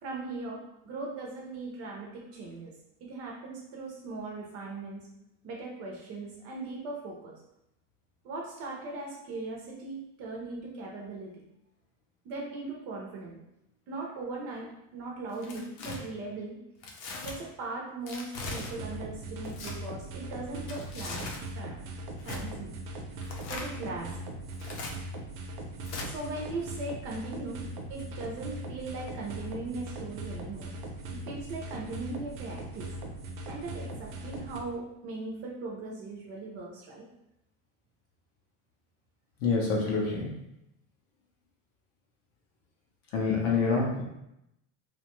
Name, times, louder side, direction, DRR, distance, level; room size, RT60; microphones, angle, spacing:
voice 1, 0.0-2.7 3.0-5.0 5.4-7.4 8.2-11.4 12.2-13.4 13.9-16.6 17.2-21.9 22.3-22.7 23.5-24.2 26.1-27.6 27.9-30.7 31.1-32.9 33.5-37.1, right 3 dB, 40° right, -1 dB, 0.4 m, -39 dB
Tearing, 15.3-16.0 16.8-17.3 18.1-18.7 19.4-19.7 20.6-21.4 22.2-22.4 23.2-23.7 24.5-24.9 25.8-26.1, left 3 dB, 80° left, 0.7 m, -39 dB
sound 1, 18.4-34.6, right 1 dB, 85° right, 0.6 m, -40 dB
voice 2, 39.4-40.3 43.1-44.0, left 4 dB, 40° left, -1 dB, 0.4 m, -26 dB
2.6 x 2.1 x 2.9 m, 0.84 s
cardioid pair, 175°, 39 cm